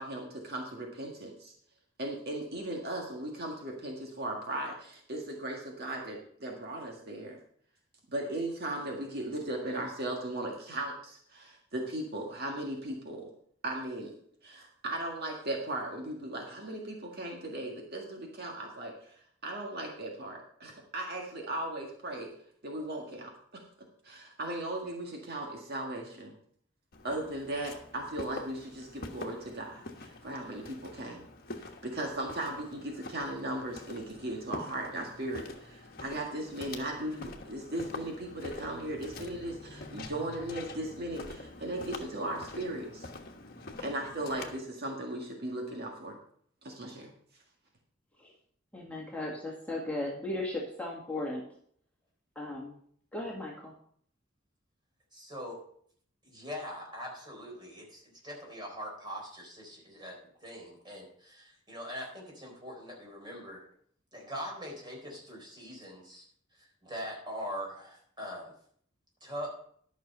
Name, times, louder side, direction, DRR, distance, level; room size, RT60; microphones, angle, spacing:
voice 1, 0.0-1.5 2.0-7.4 8.1-13.3 13.6-14.1 14.4-22.3 22.6-23.6 24.0-26.3 27.0-31.2 31.6-43.1 43.8-46.2 46.6-47.1, right 1 dB, 55° right, 0 dB, 1.8 m, -37 dB
Walk footsteps, 26.9-44.6, left 2 dB, 50° left, 1.3 m, -46 dB
voice 2, 48.7-51.4 52.4-52.7 53.1-53.7, left 1 dB, 10° left, -3 dB, 2.0 m, -36 dB
voice 3, 55.1-55.6 56.2-63.6 64.1-66.2 66.5-68.5 69.2-69.5, equal, 25° right, -1 dB, 4.2 m, -42 dB
12.0 x 6.2 x 5.4 m, 0.62 s
head